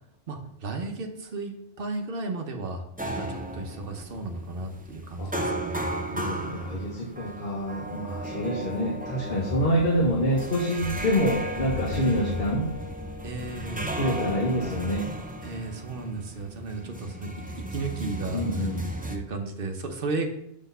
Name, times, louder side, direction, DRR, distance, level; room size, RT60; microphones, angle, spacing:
voice 1, 0.3-5.9 13.2-13.9 15.4-17.3 17.6-18.7 19.1-20.3, right 3 dB, 65° right, 4 dB, 1.1 m, -34 dB
sound 1, 3.0-19.2, right 1 dB, 10° right, 0.5 m, -35 dB
voice 2, 6.1-12.7 14.0-15.0 18.3-18.8, equal, 55° left, -4 dB, 1.5 m, -26 dB
sound 2, 9.3-15.5, left 3 dB, 20° left, 0.8 m, -39 dB
6.1 x 3.7 x 5.5 m, 0.78 s
omnidirectional pair, 1.0 m